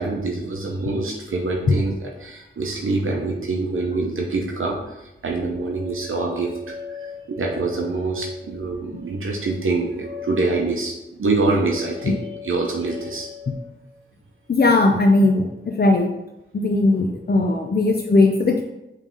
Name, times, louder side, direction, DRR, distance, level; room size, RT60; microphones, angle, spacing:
voice 1, 0.0-13.7, right 3 dB, 80° right, 0 dB, 0.8 m, -25 dB
voice 2, 14.5-16.1 16.5-18.6, left 2 dB, 50° left, 2 dB, 0.6 m, -18 dB
5.4 x 3.3 x 5.3 m, 0.93 s
wide cardioid pair, 90°, 21 cm